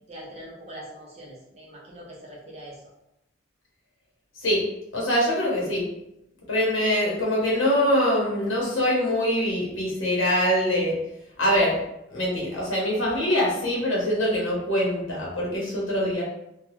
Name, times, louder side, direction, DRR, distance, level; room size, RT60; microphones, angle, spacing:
voice 1, 0.1-2.9, right 1 dB, 35° right, -4 dB, 0.8 m, -42 dB
voice 2, 4.9-5.9 6.5-11.0 11.4-11.8 12.1-16.2, equal, 90° left, -4 dB, 1.0 m, -23 dB
2.8 x 2.3 x 3.1 m, 0.85 s
head